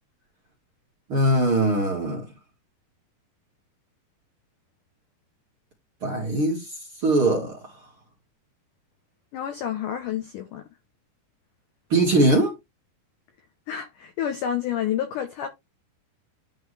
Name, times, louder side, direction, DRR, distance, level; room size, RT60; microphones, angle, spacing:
voice 1, 1.1-2.2 6.0-6.7 7.0-7.6 11.9-12.5, right 1 dB, 45° right, 2.0 m, -21 dB
voice 2, 9.3-10.7 13.7-15.5, left 10 dB, 80° left, 1.8 m, -29 dB
11.5 x 3.8 x 3.3 m
omnidirectional pair, 5.1 m